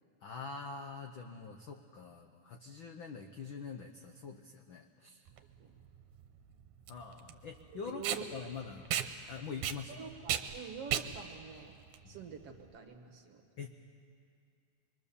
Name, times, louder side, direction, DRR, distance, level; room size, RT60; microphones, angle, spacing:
voice 1, 0.2-5.2 6.9-8.0 8.3-8.9 9.3-10.1 12.0-12.2 13.6-13.9, left 5 dB, 75° left, 4 dB, 1.1 m, -45 dB
Packing tape duct tape, 5.3-12.7, right 10 dB, 75° right, 2.2 m, -37 dB
voice 2, 7.7-8.3 9.9-11.7 12.1-13.4, right 6 dB, 55° right, 5 dB, 2.2 m, -46 dB
25.5 x 22.5 x 7.0 m, 2.3 s
omnidirectional pair, 3.6 m